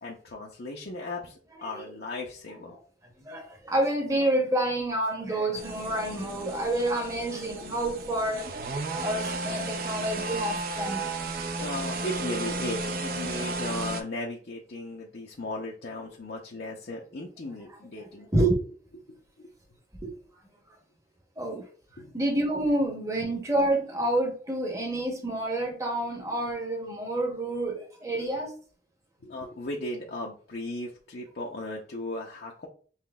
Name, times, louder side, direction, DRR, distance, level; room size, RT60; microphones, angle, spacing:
voice 1, 0.0-2.7 11.6-18.3 19.1-19.5 22.0-22.1 29.2-32.7, left 1 dB, 65° left, 0.6 m, -36 dB
voice 2, 3.3-11.1 18.3-18.5 20.0-20.1 21.4-21.7 22.1-28.5, right 1 dB, 20° right, 0.9 m, -28 dB
sound 1, 5.5-14.0, right 3 dB, 55° right, 0.5 m, -33 dB
5.7 x 3.0 x 2.3 m
head